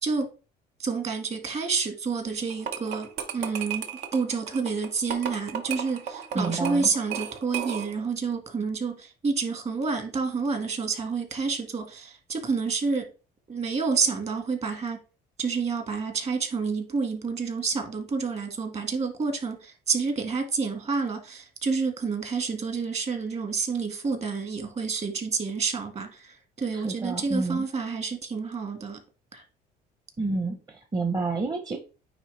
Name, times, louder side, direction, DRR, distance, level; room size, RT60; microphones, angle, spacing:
voice 1, 0.8-13.0 13.5-15.0 15.4-29.0 29.3-29.4, right 5 dB, 40° right, 1.7 m, -29 dB
sound 1, 2.5-8.1, right 7 dB, 85° right, 1.0 m, -34 dB
voice 2, 6.3-6.9 26.7-27.6 30.2-31.8, right 3 dB, 25° right, 0.8 m, -29 dB
9.1 x 3.3 x 3.3 m
cardioid pair, 110°, 17 cm